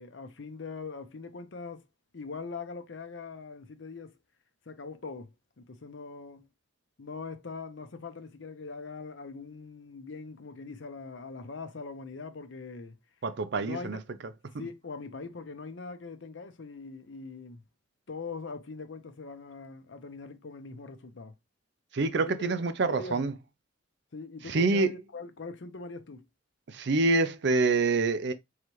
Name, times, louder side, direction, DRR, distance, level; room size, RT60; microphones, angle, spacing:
voice 1, 0.0-1.8 2.1-4.1 4.7-6.5 7.0-13.0 13.6-14.0 14.6-17.6 18.1-21.3 22.2-22.6 22.9-23.2 24.1-26.3, left 4 dB, 70° left, 0.7 m, -42 dB
voice 2, 13.2-14.0 21.9-23.3 24.5-24.9 26.7-28.3, right 3 dB, 65° right, 0.5 m, -26 dB
3.9 x 3.2 x 3.0 m
head